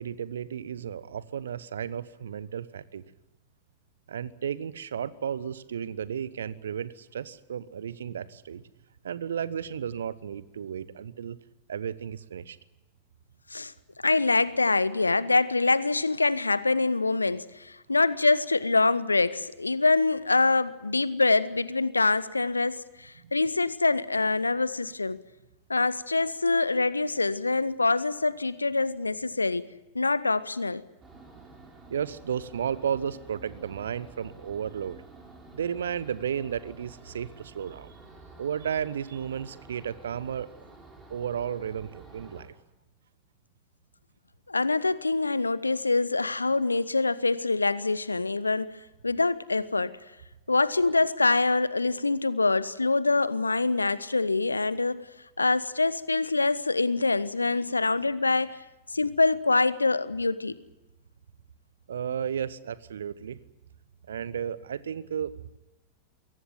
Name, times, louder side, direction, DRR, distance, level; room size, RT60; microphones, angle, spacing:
voice 1, 0.0-3.0 4.1-8.6 9.0-11.4 11.7-12.6 31.9-35.0 35.5-37.9 38.4-40.5 41.1-42.5 61.9-63.4 64.1-65.3, right 8 dB, 65° right, 18 dB, 1.1 m, -33 dB
voice 2, 14.0-25.2 25.7-30.8 44.5-50.0 50.5-55.0 55.4-58.6 58.9-60.6, left 3 dB, 80° left, 18 dB, 0.9 m, -25 dB
sound 1, 31.0-42.4, right 3 dB, 15° right, 5.9 m, -50 dB
23.0 x 17.5 x 9.3 m, 1.0 s
figure-of-eight pair, 90°, 0 cm